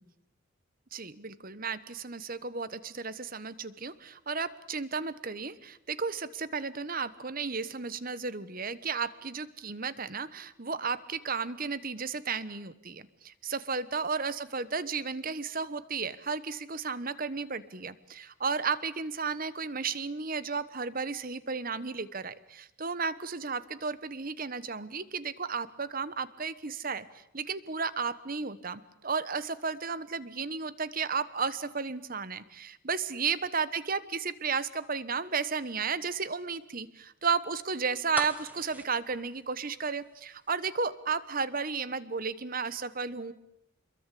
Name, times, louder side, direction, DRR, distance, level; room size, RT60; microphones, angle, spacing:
voice 1, 0.9-43.3, right 5 dB, 40° right, 15 dB, 1.2 m, -33 dB
sound 1, 38.1-40.2 40.5-40.6, right 1 dB, 10° right, 1.3 m, -38 dB
27.5 x 22.0 x 8.5 m, 0.80 s
head